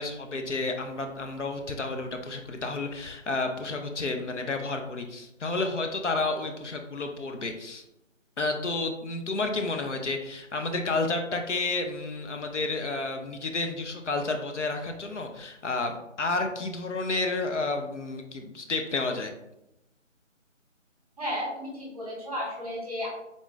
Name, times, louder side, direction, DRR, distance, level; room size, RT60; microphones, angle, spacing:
voice 1, 0.0-7.8 8.4-19.3, left 3 dB, 70° left, 4 dB, 0.6 m, -31 dB
voice 2, 21.2-23.1, equal, 30° right, -4 dB, 1.1 m, -33 dB
3.7 x 2.3 x 3.9 m, 0.87 s
figure-of-eight pair, 175°, 38 cm